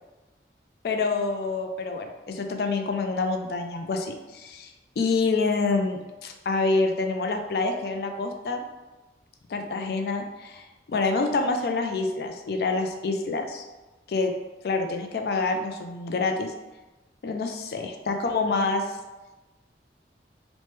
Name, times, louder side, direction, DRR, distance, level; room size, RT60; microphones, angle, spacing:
voice 1, 0.8-8.7 9.5-13.6 14.1-14.3 14.6-16.5 17.2-19.0, left 3 dB, 60° left, 4 dB, 0.3 m, -27 dB
3.0 x 2.1 x 3.2 m, 1.1 s
head